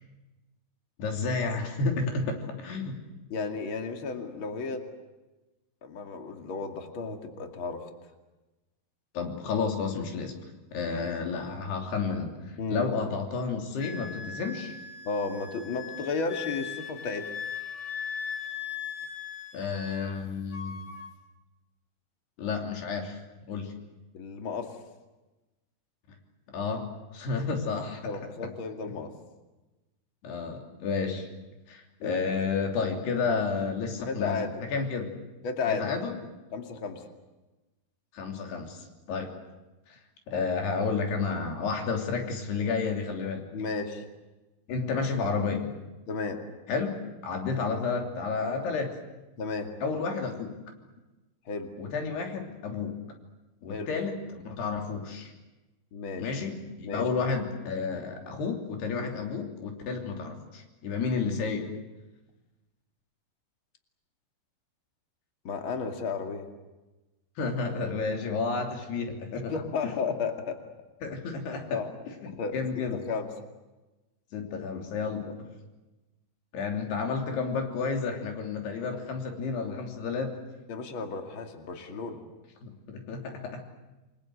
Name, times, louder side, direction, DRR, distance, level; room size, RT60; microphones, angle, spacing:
voice 1, 1.0-3.0 9.2-10.3 10.7-14.8 19.5-20.8 22.4-23.2 23.5-23.7 26.5-28.0 30.2-31.3 31.7-35.1 35.7-36.2 38.1-39.3 39.9-40.0 40.3-43.4 44.7-45.7 46.7-46.9 47.2-49.0 49.8-50.6 51.8-53.0 53.6-55.3 56.2-61.7 67.4-69.9 71.0-71.8 72.1-73.0 74.3-75.5 76.5-80.3 82.6-83.6, left 4 dB, 75° left, 3 dB, 5.2 m, -31 dB
voice 2, 3.3-4.9 5.8-7.8 12.6-12.9 15.0-17.3 24.1-24.7 28.0-29.1 32.0-32.4 34.1-34.7 35.4-35.9 36.5-37.0 43.5-44.0 46.1-46.4 49.4-49.7 51.5-51.7 53.7-53.9 55.9-56.3 56.8-57.0 65.4-66.5 69.5-70.6 71.7-71.9 72.3-72.6 72.9-73.3 75.2-75.3 80.7-82.2, left 4 dB, 35° left, 4 dB, 2.6 m, -33 dB
Wind instrument woodwind instrument, 13.8-20.2 20.5-21.1, left 7 dB, 55° left, 2.9 m, -39 dB
29.0 x 22.0 x 7.9 m, 1.1 s
omnidirectional pair, 4.7 m